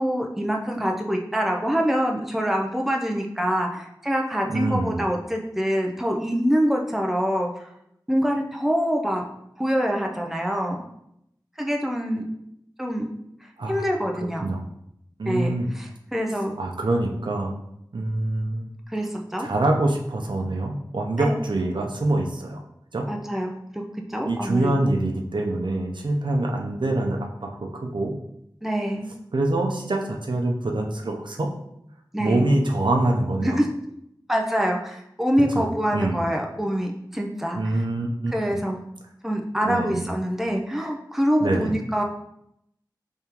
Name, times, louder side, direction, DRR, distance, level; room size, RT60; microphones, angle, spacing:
voice 1, 0.0-7.5 8.1-9.2 9.6-10.8 11.6-12.3 12.8-13.1 13.7-14.5 15.3-16.5 18.9-19.5 21.2-21.3 23.1-23.8 24.1-24.7 28.6-29.1 32.1-32.4 33.4-33.7 34.3-37.6 38.3-38.8 39.2-42.0, equal, 5° right, 1 dB, 0.5 m, -25 dB
voice 2, 4.5-5.0 13.6-13.8 14.4-14.6 15.2-15.7 16.6-17.5 17.9-18.7 19.4-22.6 22.9-23.1 24.2-28.1 29.3-31.5 32.2-33.6 35.5-36.3 37.5-38.6 39.6-40.1 41.4-41.7, right 2 dB, 90° right, 1 dB, 0.5 m, -25 dB
3.6 x 3.4 x 2.9 m, 0.78 s
wide cardioid pair, 50°, 8 cm